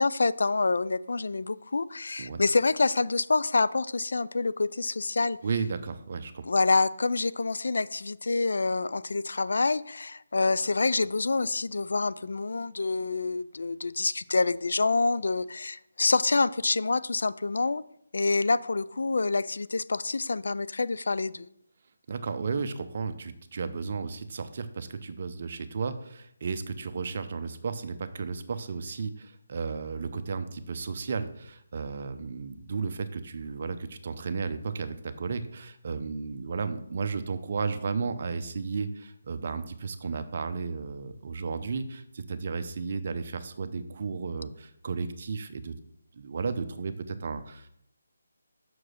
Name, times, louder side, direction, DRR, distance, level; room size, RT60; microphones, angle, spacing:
voice 1, 0.0-5.4 6.5-17.8 18.1-21.5, left 3 dB, 70° left, 0.3 m, -27 dB
voice 2, 5.4-6.4 22.1-45.7 46.1-47.7, right 5 dB, 40° right, 0.7 m, -34 dB
6.1 x 4.7 x 6.3 m
figure-of-eight pair, 165°, 0 cm